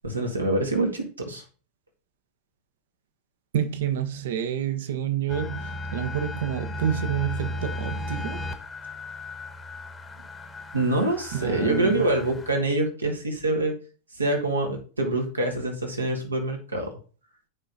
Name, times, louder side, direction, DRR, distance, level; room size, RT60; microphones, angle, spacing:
voice 1, 0.0-1.4 10.7-13.7 14.2-16.9, right 2 dB, 80° right, 2.0 m, -25 dB
voice 2, 3.5-8.5 11.3-12.1, right 9 dB, 55° right, 1.0 m, -28 dB
sound 1, 5.3-12.5, left 2 dB, 15° left, 1.1 m, -35 dB
8.7 x 5.1 x 4.0 m
figure-of-eight pair, 90°, 0 cm